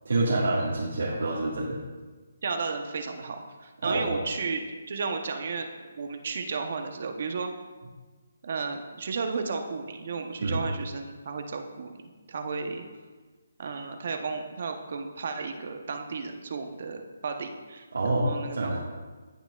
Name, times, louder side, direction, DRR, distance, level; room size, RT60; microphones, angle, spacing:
voice 1, 0.0-1.8 3.8-4.2 10.4-10.6 17.9-18.8, right 2 dB, 80° right, -6 dB, 1.7 m, -27 dB
voice 2, 2.4-4.6 4.9-7.5 8.4-11.9 12.3-12.9 13.6-18.8, right 4 dB, 55° right, 5 dB, 0.9 m, -33 dB
16.0 x 6.0 x 2.4 m, 1.3 s
hypercardioid pair, 155°, 0 cm